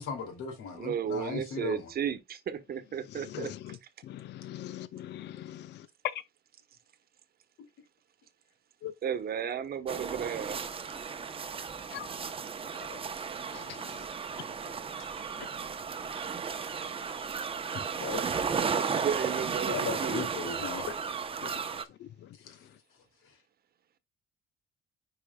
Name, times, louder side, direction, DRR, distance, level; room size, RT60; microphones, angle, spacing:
voice 1, 0.0-1.9 3.3-3.5 17.7-18.3 19.6-20.9 22.4-22.5 23.2-23.3, left 5 dB, 85° left, 2.6 m, -37 dB
voice 2, 0.8-3.8 9.0-10.6 18.8-20.3, right 8 dB, 45° right, 1.1 m, -34 dB
voice 3, 3.1-3.8 4.0-5.9 8.8-8.9 11.9-12.2 12.7-13.0 13.5-14.0 15.4-15.5 21.4-22.3, left 12 dB, 55° left, 0.5 m, -43 dB
sound 1, 9.9-21.8, right 6 dB, 25° right, 0.8 m, -34 dB
10.0 x 4.8 x 2.2 m
cardioid pair, 140°, 21 cm